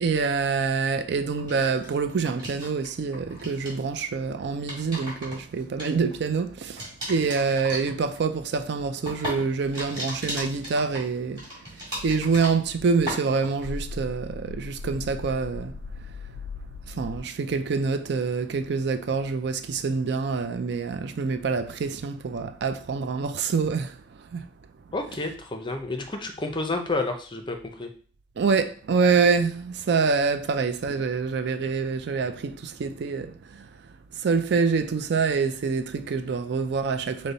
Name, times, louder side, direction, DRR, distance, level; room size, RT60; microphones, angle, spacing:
voice 1, 0.0-11.5 12.0-15.7 16.9-24.4 28.4-33.7 34.1-37.3, right 5 dB, 65° right, 0.4 m, -26 dB
sound 1, 1.4-2.9 3.1-3.8 4.4-6.4 6.8-12.8 13.1-13.7, equal, 25° right, 2.3 m, -36 dB
sound 2, 12.0-17.2, left 3 dB, 80° left, 0.3 m, -39 dB
voice 2, 24.9-27.9, left 2 dB, 25° left, 0.6 m, -30 dB
5.2 x 2.1 x 4.0 m
head